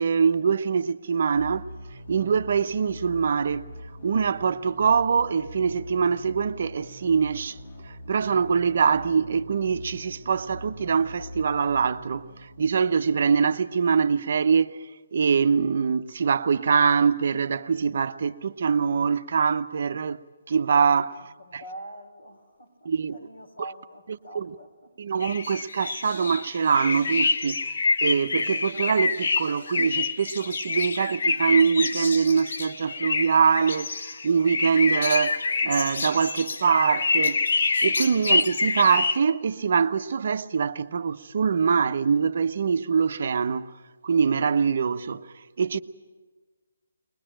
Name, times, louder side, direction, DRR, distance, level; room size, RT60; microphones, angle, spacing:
voice 1, 0.0-1.6 2.1-3.7 4.0-7.6 7.8-20.2 20.5-21.2 21.5-21.6 22.8-23.2 23.6-23.7 24.3-24.5 25.0-37.4 37.8-43.7 44.0-45.8, right 6 dB, 55° right, 0.8 m, -24 dB
sound 1, 1.3-13.3, equal, 50° left, 2.6 m, -43 dB
voice 2, 21.1-24.9, right 1 dB, 85° left, 4.2 m, -44 dB
sound 2, 25.2-39.2, left 4 dB, 70° left, 0.9 m, -27 dB
21.5 x 20.0 x 8.9 m
hypercardioid pair, 160°, 0 cm